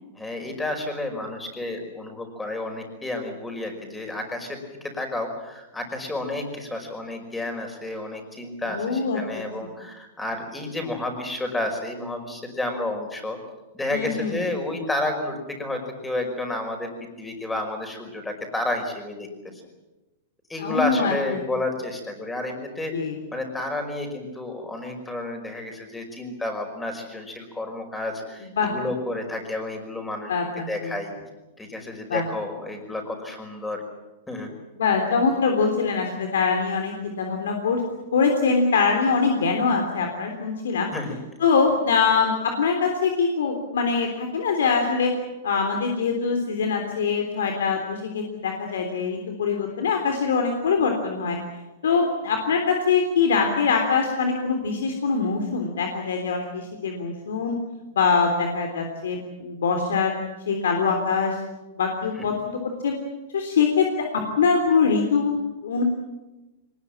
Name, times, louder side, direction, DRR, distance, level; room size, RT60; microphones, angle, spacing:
voice 1, 0.2-13.4 13.7-16.9 17.2-19.3 20.5-22.9 23.3-30.3 30.7-31.1 31.6-33.8 34.3-34.5 40.9-41.2 62.2-62.3, left 2 dB, 10° left, 4 dB, 5.4 m, -31 dB
voice 2, 8.7-9.7 13.9-14.4 20.6-21.1 22.9-23.2 28.6-28.7 30.3-31.0 32.1-32.3 34.8-37.8 38.1-40.9 41.4-45.1 45.4-51.4 51.8-57.6 57.9-60.1 60.5-61.4 61.7-62.9 63.3-64.1 64.4-65.8, left 5 dB, 90° left, 4 dB, 3.5 m, -23 dB
23.0 x 20.5 x 8.8 m, 1.1 s
hypercardioid pair, 140°, 0 cm